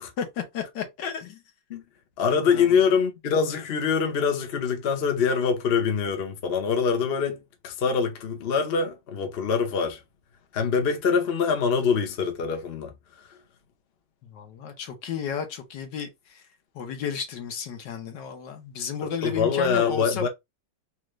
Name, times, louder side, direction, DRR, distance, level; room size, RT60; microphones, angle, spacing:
voice 1, 0.2-1.4 2.4-2.7 14.2-16.4 16.7-20.3, left 7 dB, 70° left, 1.5 m, -33 dB
voice 2, 2.2-10.0 10.5-12.9 13.2-13.3 19.0-20.3, left 6 dB, 50° left, 0.8 m, -24 dB
4.2 x 2.5 x 3.1 m
omnidirectional pair, 2.0 m